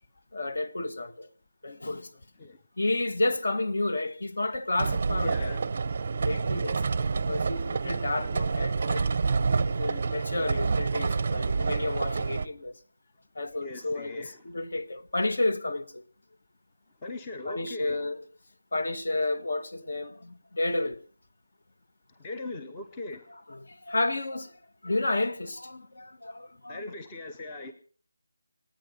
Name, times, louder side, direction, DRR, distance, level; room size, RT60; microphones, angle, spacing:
voice 1, 0.3-1.3 1.6-2.1 2.8-5.5 6.2-9.1 9.7-12.7 13.3-16.0 17.4-18.2 18.7-21.0 23.5-24.5 24.8-26.8, left 2 dB, 50° left, 1.6 m, -31 dB
sound 1, 4.8-12.5, right 4 dB, 30° right, 0.6 m, -28 dB
voice 2, 5.2-5.7 13.6-14.5 17.0-18.0 22.1-23.4 26.7-27.7, left 2 dB, 10° left, 0.7 m, -40 dB
27.0 x 9.3 x 5.5 m
figure-of-eight pair, 175°, 0 cm